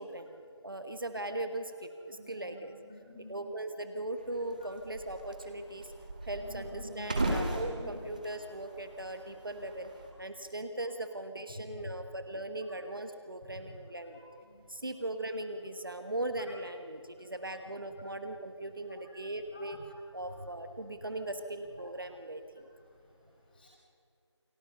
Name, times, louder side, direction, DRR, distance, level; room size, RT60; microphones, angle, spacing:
voice 1, 0.0-2.7 3.3-5.9 6.2-9.9 10.2-14.2 14.7-19.8 20.1-22.6, right 1 dB, 45° right, 7 dB, 1.4 m, -39 dB
voice 2, 2.1-2.5 2.8-3.4 4.6-4.7 6.4-7.2 7.7-7.8 11.8-11.9 13.4-13.5 14.0-14.8 19.5-19.6 20.2-20.4 23.0-23.7, left 1 dB, 20° left, -4 dB, 5.5 m, -50 dB
sound 1, 4.2-10.1, right 1 dB, 15° right, 1.8 m, -38 dB
29.0 x 21.0 x 6.8 m, 2.4 s
figure-of-eight pair, 175°, 15 cm